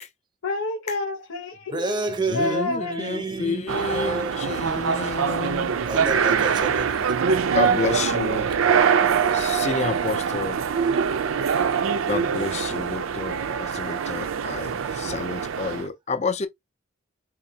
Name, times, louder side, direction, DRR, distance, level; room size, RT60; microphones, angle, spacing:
voice 1, 0.4-3.4 3.6-3.7, left 2 dB, 85° left, 0.8 m, -30 dB
voice 2, 1.7-5.1 5.9-7.1, right 3 dB, 20° right, 0.5 m, -30 dB
voice 3, 2.3-5.7 7.5-8.5 9.3-10.6 12.1-16.5, left 4 dB, 35° left, 0.4 m, -30 dB
sound 1, 3.7-15.9, right 6 dB, 90° right, 0.4 m, -24 dB
4.0 x 2.5 x 2.7 m
head